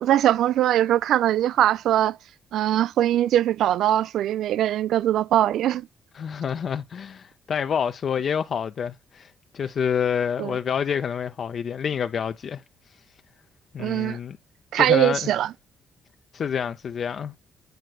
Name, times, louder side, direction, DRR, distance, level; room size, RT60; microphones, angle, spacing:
voice 1, 0.0-2.2 2.5-5.9 10.4-10.6 13.8-14.2 14.7-15.5, right 12 dB, 75° right, 0.3 m, -21 dB
voice 2, 6.2-12.6 13.7-14.4 14.8-15.2 16.3-17.3, left 7 dB, 55° left, 0.5 m, -28 dB
9.3 x 4.4 x 2.3 m
cardioid pair, 90°, 0 cm